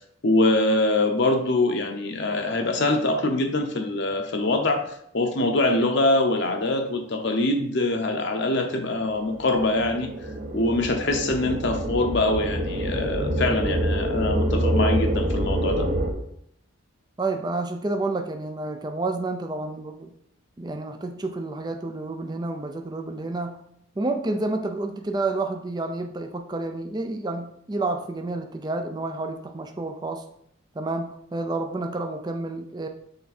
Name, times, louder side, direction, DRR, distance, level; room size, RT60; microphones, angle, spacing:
voice 1, 0.2-10.1 10.5-15.9, left 2 dB, 55° left, 4 dB, 0.8 m, -24 dB
sound 1, 9.1-16.1, right 1 dB, 40° right, 0.9 m, -26 dB
voice 2, 17.2-20.1 20.6-23.6 24.0-30.3 30.7-32.9, right 2 dB, 20° right, 5 dB, 0.4 m, -29 dB
6.9 x 4.6 x 4.2 m, 0.70 s
head